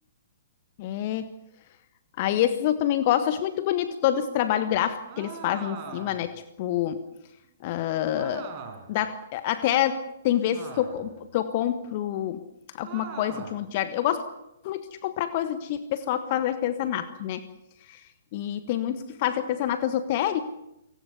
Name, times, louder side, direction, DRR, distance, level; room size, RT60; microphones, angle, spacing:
voice 1, 0.8-1.3 2.2-7.0 7.6-8.5 8.9-12.4 12.7-14.2 14.6-17.4 17.9-18.0 18.3-20.4, left 11 dB, 35° left, 11 dB, 1.3 m, -27 dB
sound 1, 5.1-6.3 8.1-9.0 10.5-11.2 12.8-13.6, right 5 dB, 30° right, 5.3 m, -41 dB
29.0 x 18.0 x 6.8 m, 0.85 s
figure-of-eight pair, 120°, 0 cm